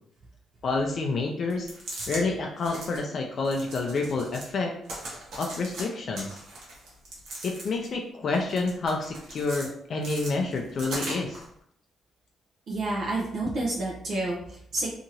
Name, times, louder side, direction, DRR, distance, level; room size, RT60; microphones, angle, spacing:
voice 1, 0.6-1.7 2.1-4.8 5.4-6.3 7.4-11.4, left 3 dB, 55° left, 1 dB, 0.4 m, -28 dB
sound 1, 1.5-2.2 2.6-3.0 3.4-4.5 4.8-5.8 6.1-7.9 8.3-9.7 10.0-11.4, right 1 dB, 75° right, 1.0 m, -39 dB
voice 2, 12.7-14.9, right 2 dB, 60° right, -3 dB, 0.6 m, -29 dB
2.8 x 2.5 x 2.7 m, 0.67 s
cardioid pair, 90°, 0 cm